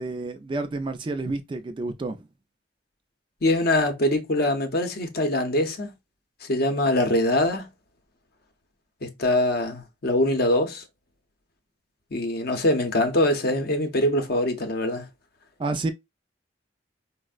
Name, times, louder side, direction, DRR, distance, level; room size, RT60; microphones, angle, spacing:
voice 1, 0.0-2.2 15.6-15.9, right 2 dB, 25° right, 0.3 m, -29 dB
voice 2, 3.4-5.9 6.4-7.7 9.0-10.8 12.1-15.1, left 1 dB, 55° left, 0.6 m, -23 dB
4.2 x 2.0 x 2.3 m
head